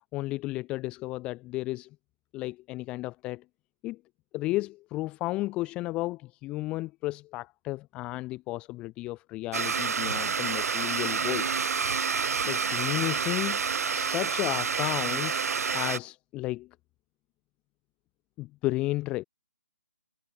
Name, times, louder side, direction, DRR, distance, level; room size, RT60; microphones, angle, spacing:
voice 1, 0.1-1.9 2.3-3.4 3.8-4.0 4.3-11.5 12.4-15.4 15.7-16.7 18.4-19.2, left 19 dB, 10° left, 0.3 m, -33 dB
Domestic sounds home sounds, 9.5-16.0, right 6 dB, 75° right, 0.6 m, -28 dB
hypercardioid pair, 155°, 8 cm